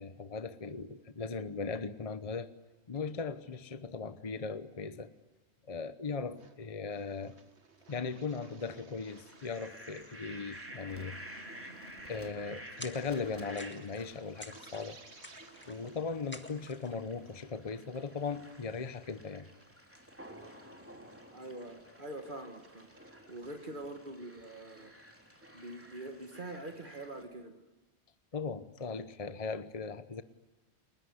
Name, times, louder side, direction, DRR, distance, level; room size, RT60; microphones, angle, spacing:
voice 1, 0.0-2.5 2.9-5.1 5.7-7.4 7.9-11.2 12.0-15.0 15.7-19.5 28.3-30.2, left 4 dB, 35° left, 12 dB, 1.0 m, -38 dB
sound 1, 6.4-6.5 6.9-16.1 16.5-16.6 16.9-17.0 17.3-17.4 17.7-17.8 18.2-18.6 19.0-19.7 20.2-20.3 21.1-21.2 21.5-21.7 22.1-23.6, right 3 dB, 80° right, 2.2 m, -58 dB
Fowl, 9.1-27.2, equal, 10° right, 3.8 m, -52 dB
sound 2, 12.8-13.3 13.6-14.1 14.4-14.9 15.2-15.9 16.3-16.9, left 1 dB, 10° left, 1.8 m, -49 dB
voice 2, 21.3-24.9 25.5-27.6, right 2 dB, 50° right, 5 dB, 1.9 m, -44 dB
29.5 x 20.5 x 9.7 m, 1.2 s
omnidirectional pair, 1.1 m